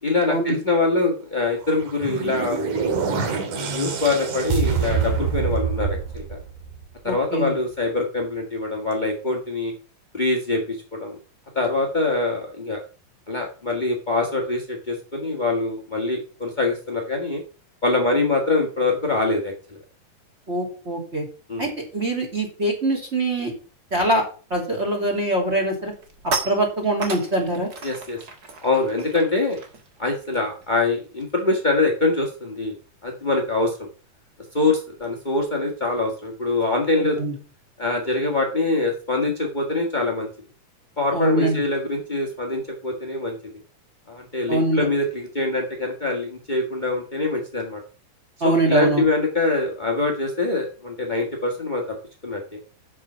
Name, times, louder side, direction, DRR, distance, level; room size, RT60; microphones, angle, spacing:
voice 1, 0.0-2.6 3.1-6.4 7.0-9.7 10.1-11.2 11.5-12.8 13.3-17.4 17.8-19.8 21.5-21.7 27.8-28.2 28.6-29.6 30.0-32.7 33.0-33.9 34.5-37.2 37.8-40.3 41.0-43.4 44.1-47.8 48.4-52.0 52.2-52.6, left 3 dB, 85° left, 0 dB, 0.4 m, -24 dB
sound 1, 1.6-7.0, right 6 dB, 60° right, 2.9 m, -26 dB
voice 2, 7.0-7.5 20.5-21.3 21.6-23.5 23.9-24.2 24.5-25.9 26.4-27.7 37.2-37.3 41.1-41.6 44.5-44.9 48.4-49.0, right 1 dB, 20° right, 1 dB, 3.0 m, -23 dB
sound 2, 25.6-31.5 31.8-32.0 32.3-37.3, right 4 dB, 45° right, 1.3 m, -37 dB
7.6 x 7.6 x 5.7 m, 0.37 s
omnidirectional pair, 4.1 m